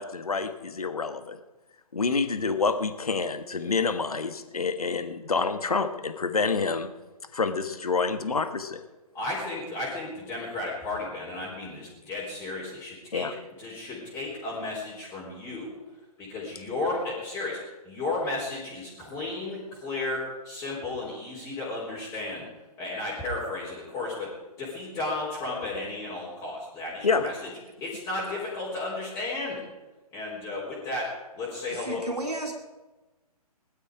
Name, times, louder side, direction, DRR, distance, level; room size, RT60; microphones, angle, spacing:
voice 1, 0.0-1.4 1.9-6.9 7.3-8.8 13.1-13.3 27.0-27.3, left 4 dB, 65° left, 9 dB, 1.4 m, -27 dB
voice 2, 9.1-13.3 13.6-15.8 16.2-17.6 17.8-22.4 22.8-24.3 24.6-27.3 27.8-29.6 30.1-32.0, left 2 dB, 15° left, -7 dB, 3.9 m, -33 dB
voice 3, 31.7-32.5, right 2 dB, 80° right, 3 dB, 2.4 m, -32 dB
20.0 x 12.0 x 5.0 m, 1.1 s
figure-of-eight pair, 130°, 20 cm